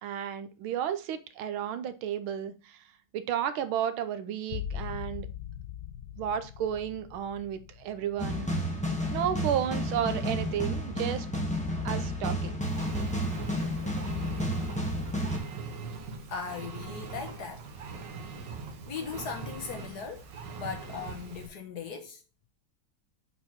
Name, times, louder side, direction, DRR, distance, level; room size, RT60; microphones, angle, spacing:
voice 1, 0.0-2.8 3.1-5.3 6.2-8.5 9.1-11.3 11.8-12.6, right 9 dB, 85° right, 1.6 m, -32 dB
sound 1, 4.5-9.9 10.4-11.0, left 10 dB, 85° left, 0.8 m, -42 dB
sound 2, 8.2-15.4, equal, 5° left, 1.1 m, -31 dB
Engine, 12.6-21.5, right 4 dB, 65° right, 1.6 m, -41 dB
voice 2, 16.3-17.6 18.3-18.4 18.8-22.2, left 6 dB, 55° left, 1.5 m, -38 dB
7.4 x 4.4 x 4.5 m
omnidirectional pair, 2.2 m